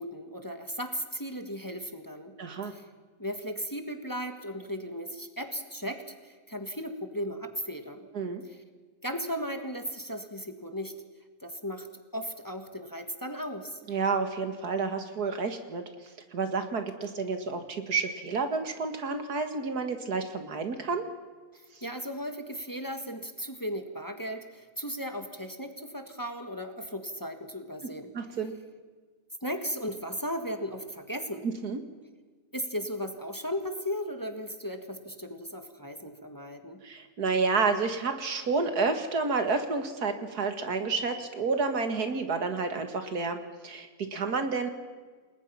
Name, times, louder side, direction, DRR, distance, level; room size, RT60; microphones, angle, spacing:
voice 1, 0.0-2.3 2.6-2.8 3.2-8.1 8.5-8.6 9.0-10.9 11.4-11.9 12.1-13.8 21.8-28.1 29.4-31.4 32.5-36.8, equal, 15° left, 6 dB, 1.6 m, -36 dB
voice 2, 2.4-2.7 8.1-8.4 13.9-15.8 16.3-21.1 21.7-21.8 28.1-28.5 31.4-31.8 36.8-44.7, right 4 dB, 80° right, 7 dB, 2.4 m, -30 dB
29.0 x 20.5 x 5.8 m, 1.5 s
omnidirectional pair, 1.6 m